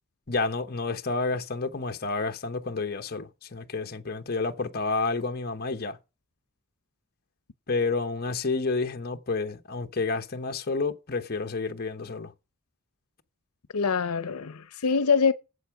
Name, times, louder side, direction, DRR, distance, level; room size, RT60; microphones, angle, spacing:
voice 1, 0.3-6.0 7.7-12.3, left 3 dB, 45° left, 1.0 m, -30 dB
voice 2, 13.7-15.3, left 5 dB, 90° left, 0.7 m, -24 dB
8.2 x 7.8 x 5.8 m
head